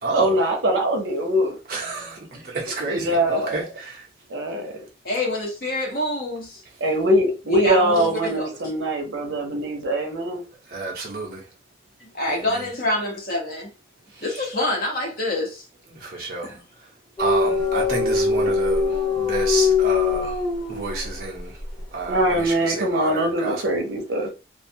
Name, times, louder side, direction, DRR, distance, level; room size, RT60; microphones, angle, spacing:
voice 1, 0.1-1.6 2.5-3.6 4.3-4.7 6.8-10.4 22.1-24.3, right 1 dB, 90° right, 0.7 m, -22 dB
voice 2, 1.7-2.2 2.5-3.6 10.7-11.4 16.0-16.5 17.2-18.8 19.2-20.3 20.7-21.5 21.9-22.2 22.5-23.5, right 3 dB, 50° right, 0.7 m, -29 dB
voice 3, 5.0-6.6 7.5-8.6 12.0-13.7 14.2-15.7 16.1-16.6, left 1 dB, 55° left, 0.9 m, -26 dB
sound 1, 17.2-21.2, left 4 dB, 25° left, 1.1 m, -22 dB
2.4 x 2.2 x 2.7 m
head